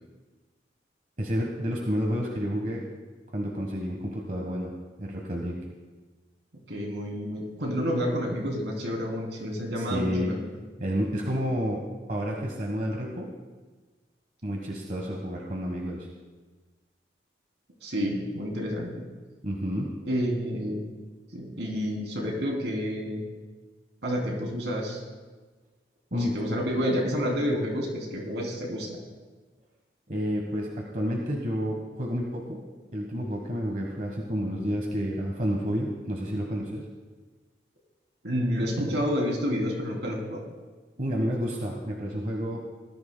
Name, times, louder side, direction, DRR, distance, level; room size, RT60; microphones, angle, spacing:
voice 1, 1.2-2.8 3.3-4.7 5.0-5.6 9.8-10.3 10.8-11.8 12.1-13.3 14.4-16.1 19.4-19.9 26.1-26.3 30.1-32.6 32.9-36.8 41.0-42.6, equal, 45° right, 0 dB, 1.3 m, -30 dB
voice 2, 6.7-10.4 17.8-18.9 20.1-20.9 21.3-23.2 24.0-25.0 26.1-29.0 38.2-40.4, equal, 75° right, -1 dB, 3.0 m, -29 dB
19.5 x 13.5 x 2.2 m, 1.3 s
head